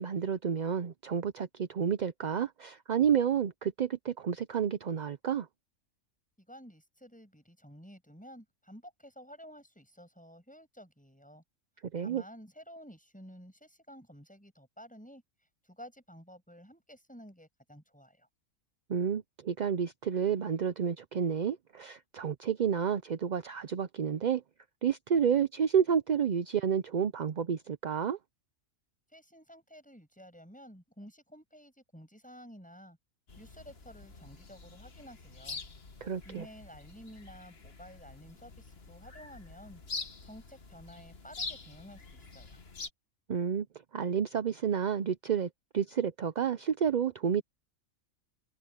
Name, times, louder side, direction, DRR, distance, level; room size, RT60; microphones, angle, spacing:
voice 1, 0.0-5.5 11.9-12.2 18.9-24.4 24.8-28.2 36.0-36.5 43.3-43.7 43.9-47.4, right 7 dB, 50° right, 0.5 m, -30 dB
voice 2, 6.4-11.4 12.0-15.2 15.6-18.3 29.1-33.0 33.4-35.6 36.2-39.8 40.2-42.6, equal, 5° left, 6.7 m, -52 dB
sound 1, 33.3-42.9, left 4 dB, 50° left, 1.9 m, -45 dB
omnidirectional pair, 1.4 m